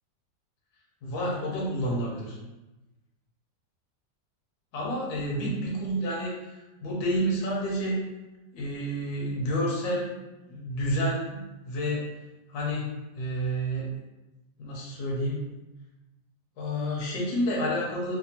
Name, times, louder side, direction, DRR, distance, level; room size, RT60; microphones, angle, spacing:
voice 1, 1.0-2.4 4.7-6.3 6.8-8.0 8.5-10.2 10.5-12.1 12.5-12.9 13.2-13.9 14.6-15.4 16.6-18.2, equal, 70° left, -4 dB, 1.2 m, -29 dB
3.3 x 2.1 x 2.8 m, 1.0 s
omnidirectional pair, 2.0 m